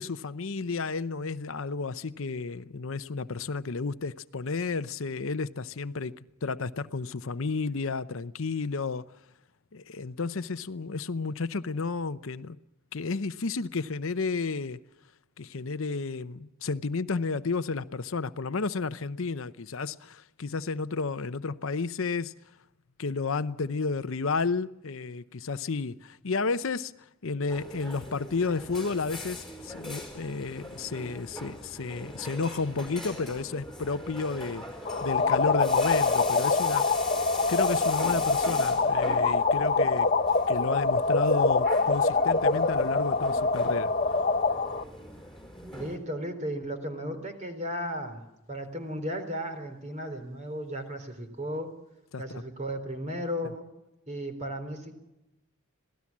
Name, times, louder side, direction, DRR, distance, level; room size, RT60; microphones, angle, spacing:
voice 1, 0.0-6.1 6.4-9.0 9.7-12.6 12.9-14.8 15.4-22.3 23.0-26.9 27.2-34.6 35.0-37.0 37.5-40.1 40.5-43.9 52.1-52.4, left 4 dB, 65° left, 0.7 m, -32 dB
sound 1, 27.5-46.0, left 1 dB, ahead, 4.7 m, -41 dB
sound 2, 34.9-44.8, left 4 dB, 35° left, 0.9 m, -25 dB
voice 2, 45.7-48.2 48.5-51.7 52.2-53.7 54.1-54.9, equal, 35° right, 3.9 m, -35 dB
26.5 x 17.5 x 7.3 m
head